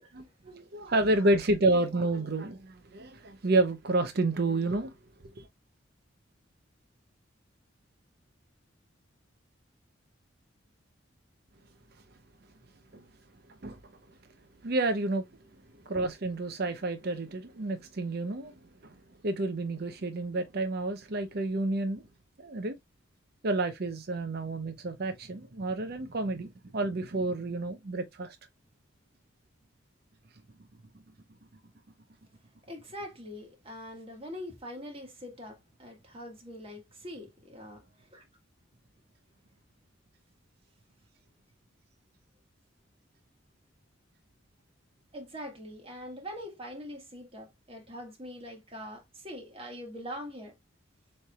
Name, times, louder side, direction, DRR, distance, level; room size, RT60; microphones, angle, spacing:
voice 1, 0.1-4.9 5.4-5.5 12.9-13.1 13.6-13.8 14.6-15.3 15.9-18.5 18.8-18.9 19.2-22.1 22.4-22.7 23.4-28.4, right 2 dB, 55° right, 0.7 m, -30 dB
voice 2, 32.7-38.2 45.1-50.5, equal, 30° right, 1.7 m, -43 dB
7.0 x 3.3 x 2.3 m
head